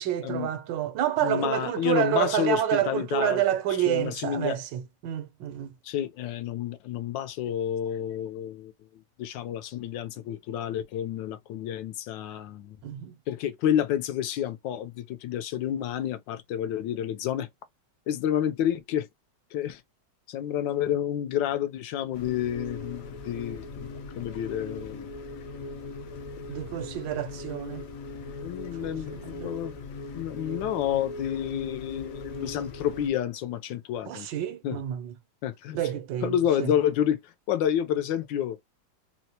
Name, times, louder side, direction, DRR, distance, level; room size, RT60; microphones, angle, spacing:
voice 1, 0.0-5.7 12.8-13.2 26.5-27.8 28.8-29.5 34.1-35.1 35.7-36.3 36.6-36.7, right 11 dB, 85° right, 1.3 m, -28 dB
voice 2, 1.2-3.5 3.9-4.6 5.8-8.7 9.2-12.8 13.3-17.5 18.1-19.1 19.5-19.8 20.3-25.1 26.3-26.4 28.4-29.8 30.1-34.3 34.6-34.8 35.4-35.8 36.2-38.6, left 10 dB, 85° left, 1.3 m, -29 dB
sound 1, 22.1-33.1, left 3 dB, 65° left, 0.9 m, -39 dB
4.2 x 2.1 x 2.8 m
omnidirectional pair, 2.0 m